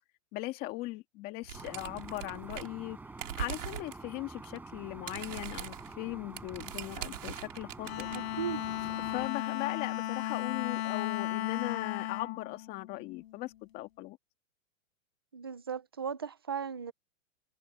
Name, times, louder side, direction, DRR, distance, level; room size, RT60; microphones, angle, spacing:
voice 1, 0.3-3.0 3.4-8.1 9.1-14.2, left 19 dB, 25° left, 1.9 m, -39 dB
sound 1, 1.4-2.9 3.1-4.0 4.4-4.6 4.8-8.2, right 11 dB, 70° right, 3.0 m, -41 dB
Aircraft, 1.5-9.3, right 3 dB, 5° right, 6.0 m, -48 dB
Bowed string instrument, 7.8-13.4, left 13 dB, 55° left, 6.1 m, -35 dB
voice 2, 8.1-8.7 15.3-16.9, right 7 dB, 20° right, 0.3 m, -37 dB
hypercardioid pair, 160°, 39 cm